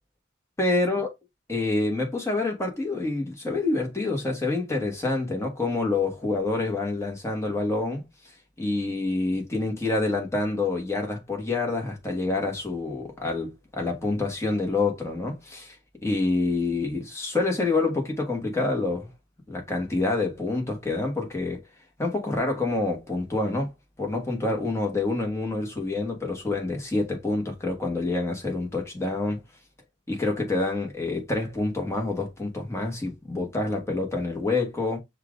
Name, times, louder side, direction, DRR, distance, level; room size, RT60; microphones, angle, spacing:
voice 1, 0.6-1.1 1.5-8.0 8.6-15.8 16.0-19.1 19.5-21.6 22.0-23.7 24.0-29.4 30.1-35.0, left 2 dB, 15° left, 1.3 m, -27 dB
5.7 x 2.5 x 3.6 m
head